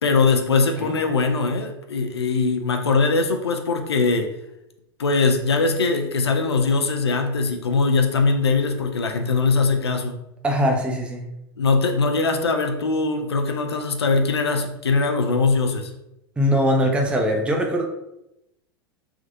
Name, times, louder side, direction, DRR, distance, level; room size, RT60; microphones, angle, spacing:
voice 1, 0.0-4.3 5.0-10.2 11.6-15.9, left 4 dB, 85° left, 5 dB, 0.4 m, -21 dB
voice 2, 10.4-11.2 16.4-17.8, equal, 10° right, 2 dB, 0.5 m, -21 dB
3.4 x 2.4 x 2.6 m, 0.88 s
figure-of-eight pair, 90°, 13 cm